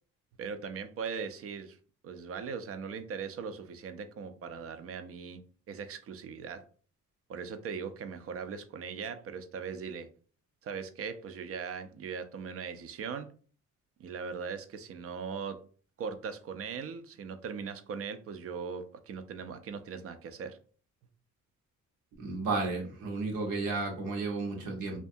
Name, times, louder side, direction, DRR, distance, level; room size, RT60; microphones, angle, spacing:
voice 1, 0.4-1.8 2.0-5.4 5.7-6.6 7.3-10.1 10.6-13.3 14.0-15.6 16.0-20.6, right 6 dB, 50° right, 9 dB, 0.4 m, -39 dB
voice 2, 22.2-25.0, right 3 dB, 90° right, 0 dB, 1.0 m, -33 dB
2.5 x 2.3 x 2.6 m, 0.42 s
cardioid pair, 90°, 30 cm